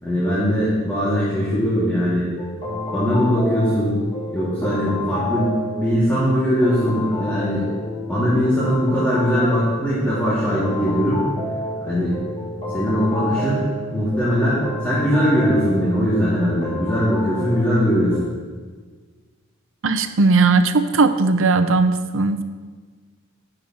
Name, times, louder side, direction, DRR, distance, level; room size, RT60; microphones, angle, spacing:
voice 1, 0.0-2.3 2.9-4.0 4.3-7.7 8.1-11.2 11.8-12.2 12.7-13.6 13.9-18.2, equal, 10° left, -11 dB, 2.0 m, -20 dB
sound 1, 2.4-18.2, left 1 dB, 25° left, 1.9 m, -30 dB
voice 2, 19.8-22.4, right 3 dB, 65° right, 9 dB, 0.6 m, -17 dB
10.5 x 10.0 x 2.9 m, 1.4 s
head